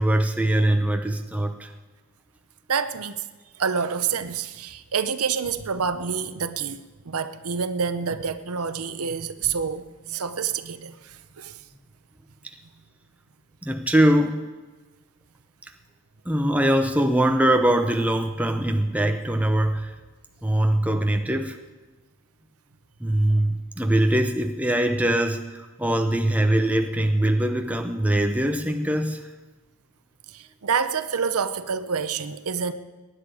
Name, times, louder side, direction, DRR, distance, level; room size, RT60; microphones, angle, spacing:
voice 1, 0.0-1.7 13.6-14.4 16.3-19.9 20.4-21.6 23.0-29.2, right 1 dB, 5° right, 4 dB, 0.7 m, -22 dB
voice 2, 2.7-3.3 3.6-11.6 30.3-32.7, right 6 dB, 85° right, 11 dB, 0.8 m, -28 dB
22.5 x 10.0 x 4.9 m, 1.2 s
head